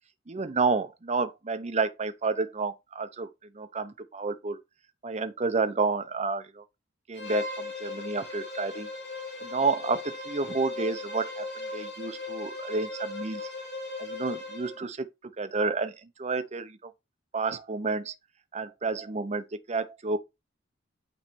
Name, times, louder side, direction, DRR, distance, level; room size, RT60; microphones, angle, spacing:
voice 1, 0.3-3.3 3.6-4.6 5.0-6.6 7.1-8.9 9.4-11.4 11.7-13.4 14.0-15.0 15.4-15.9 16.2-16.8 17.3-18.1 18.5-20.2, right 4 dB, 35° right, 0.6 m, -30 dB
Bowed string instrument, 7.1-14.8, left 3 dB, 60° left, 3.9 m, -37 dB
8.9 x 3.2 x 4.4 m
head